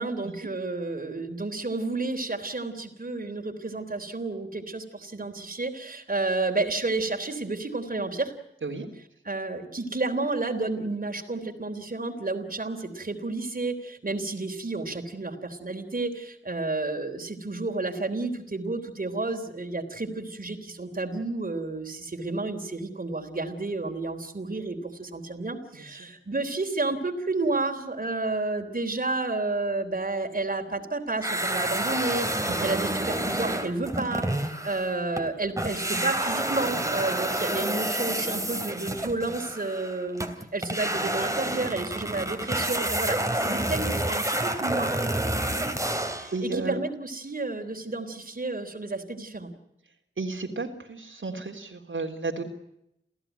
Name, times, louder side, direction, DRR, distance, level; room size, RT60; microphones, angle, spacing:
voice 1, 0.0-8.3 9.2-45.0 46.1-49.5, right 3 dB, 45° right, 4 dB, 3.6 m, -31 dB
sound 1, 31.2-35.3 35.6-46.4, right 1 dB, 15° right, 3.2 m, -29 dB
voice 2, 46.3-46.8 50.2-52.4, right 3 dB, 75° right, 2 dB, 3.5 m, -32 dB
29.0 x 16.0 x 9.3 m, 0.81 s
wide cardioid pair, 80°, 20 cm